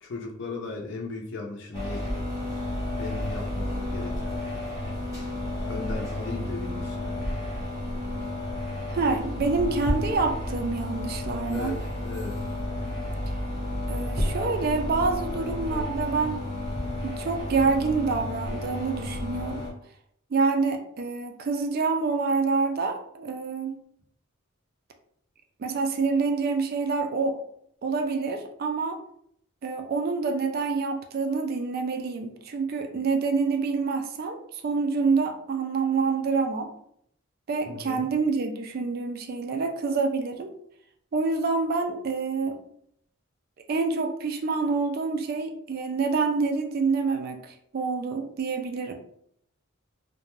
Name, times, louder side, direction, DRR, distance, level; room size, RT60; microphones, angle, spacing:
voice 1, 0.0-2.2 3.0-4.3 5.6-7.2 11.5-12.3 15.3-15.9 17.6-17.7 37.7-38.1, left 3 dB, 60° left, 1 dB, 0.6 m, -37 dB
sound 1, 1.7-19.7, left 1 dB, 15° right, 0.7 m, -31 dB
voice 2, 8.9-11.8 13.9-16.4 17.0-19.7 20.3-23.7 25.6-27.4 27.8-29.0 29.6-36.7 37.5-40.5 41.1-42.6 43.7-48.9, right 4 dB, 45° right, 5 dB, 0.3 m, -27 dB
2.5 x 2.1 x 3.1 m, 0.70 s
head